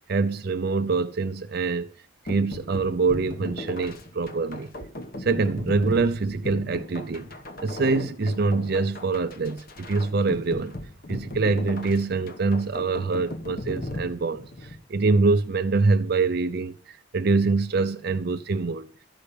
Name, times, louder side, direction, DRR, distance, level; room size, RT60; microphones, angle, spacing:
voice 1, 0.0-1.9 2.2-4.7 5.2-7.3 7.6-10.7 11.1-18.9, right 3 dB, 50° right, 0.5 m, -25 dB
sound 1, 2.3-14.8, left 1 dB, 45° left, 1.1 m, -37 dB
14.0 x 5.6 x 6.7 m
head